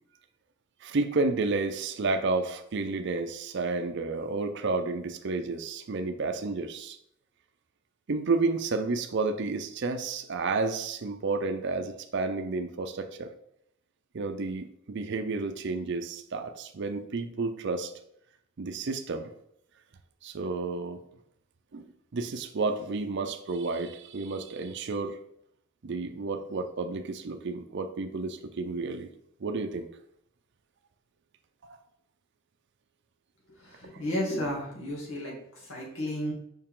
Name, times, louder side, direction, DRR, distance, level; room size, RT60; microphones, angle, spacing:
voice 1, 0.8-7.0 8.1-13.3 14.1-17.9 18.6-19.3 20.2-21.0 21.7-25.2 25.8-29.1 29.4-29.9 31.6-31.8, right 3 dB, 60° right, 6 dB, 0.5 m, -31 dB
voice 2, 33.6-36.3, equal, 80° left, -3 dB, 2.3 m, -33 dB
5.5 x 4.7 x 3.7 m, 0.73 s
head